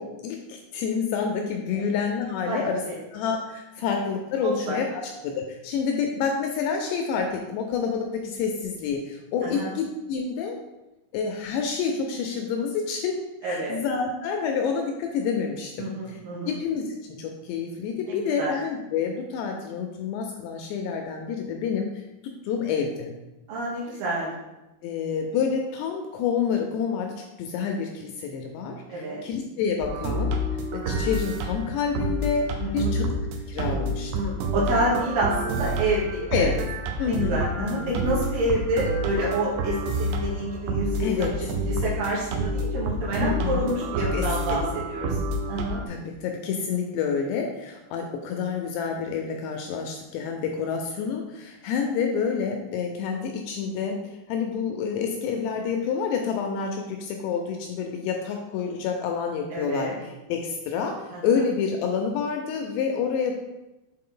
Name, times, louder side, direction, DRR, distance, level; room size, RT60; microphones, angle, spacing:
voice 1, 0.0-2.8 3.1-10.6 11.1-16.2 16.5-23.1 24.8-30.3 30.7-33.1 33.5-34.1 36.3-36.6 37.0-38.0 41.0-41.3 43.2-43.7 44.1-44.3 45.9-63.3, left 6 dB, 80° left, 3 dB, 2.5 m, -28 dB
voice 2, 2.4-3.0 4.4-4.8 9.4-9.7 13.4-13.8 15.8-16.5 18.1-18.5 23.5-24.3 28.9-29.2 32.6-32.9 34.1-36.5 37.1-45.2 45.5-45.8 59.5-60.0 61.1-61.2, right 1 dB, 65° right, -6 dB, 2.8 m, -28 dB
sound 1, 29.8-45.8, right 1 dB, 85° right, 2.3 m, -29 dB
7.6 x 3.9 x 3.8 m, 0.99 s
omnidirectional pair, 5.4 m